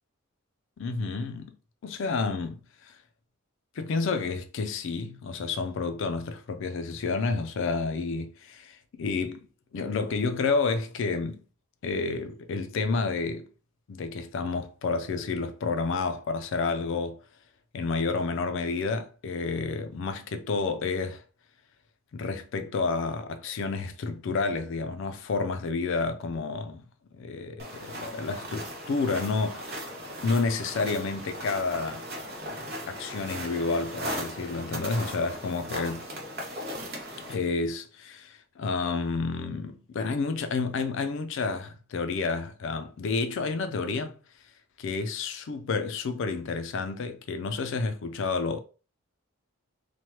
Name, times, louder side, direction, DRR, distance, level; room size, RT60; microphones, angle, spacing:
voice 1, 0.8-1.5 1.8-2.9 3.8-9.5 9.7-11.4 11.8-13.5 13.9-17.2 17.7-21.2 22.1-26.8 27.1-29.7 30.2-32.1 32.9-36.0 37.3-44.1 44.8-48.6, left 4 dB, 60° left, 0.4 m, -30 dB
sound 1, 27.6-37.3, equal, 45° right, 0.9 m, -38 dB
3.1 x 2.1 x 2.9 m
head